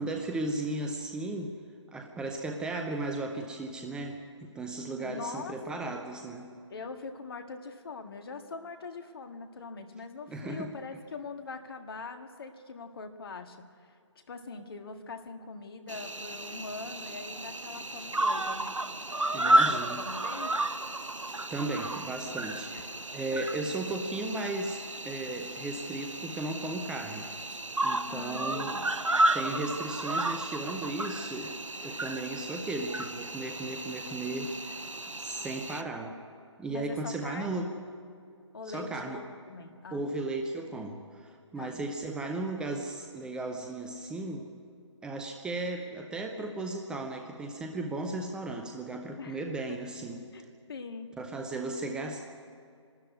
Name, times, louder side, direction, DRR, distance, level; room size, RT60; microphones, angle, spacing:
voice 1, 0.0-1.5 1.9-6.5 10.3-10.7 19.3-20.1 21.5-27.3 27.8-28.8 29.3-31.6 31.8-34.9 35.2-36.2 36.6-37.7 38.6-39.2 39.9-44.5 45.0-50.5 51.2-52.3, right 2 dB, 5° right, 3 dB, 0.6 m, -36 dB
voice 2, 5.0-5.6 5.8-5.9 6.7-13.9 14.3-18.8 19.3-20.6 22.7-22.9 28.1-28.9 36.7-37.8 38.5-40.0 41.6-41.8 49.2-49.4 49.7-49.8 50.3-51.1, left 4 dB, 50° left, 6 dB, 1.8 m, -42 dB
Cricket, 15.9-35.8, right 1 dB, 85° right, 0.9 m, -32 dB
24.0 x 13.0 x 9.5 m, 2.4 s
figure-of-eight pair, 140°, 16 cm